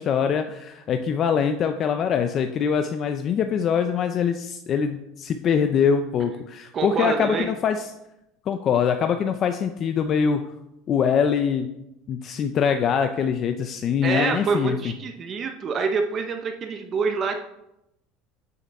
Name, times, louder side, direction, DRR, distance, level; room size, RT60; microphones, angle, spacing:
voice 1, 0.0-7.9 8.5-10.4 10.9-11.7 12.1-14.9, left 7 dB, 35° left, 7 dB, 0.4 m, -23 dB
voice 2, 6.7-7.5 14.0-17.4, right 5 dB, 30° right, 5 dB, 0.6 m, -26 dB
7.5 x 6.6 x 4.2 m, 0.85 s
cardioid pair, 160°, 0 cm